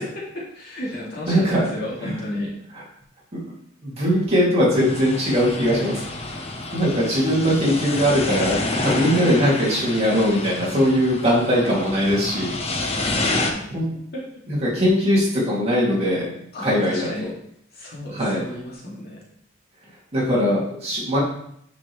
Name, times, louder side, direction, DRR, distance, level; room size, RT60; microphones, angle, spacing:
voice 1, 0.1-2.5 9.1-9.2 12.9-13.5 14.1-14.2 16.5-17.3 17.7-19.2, left 1 dB, 55° left, -4 dB, 2.2 m, -33 dB
voice 2, 1.3-1.7 2.0-2.1 3.3-3.4 3.8-6.0 6.7-12.5 13.7-13.9 14.5-16.3 16.6-17.3 18.1-18.4 20.1-21.2, equal, 30° right, -6 dB, 2.5 m, -20 dB
sound 1, 4.8-13.5, left 2 dB, 30° left, 0.9 m, -29 dB
9.6 x 5.2 x 3.2 m, 0.71 s
head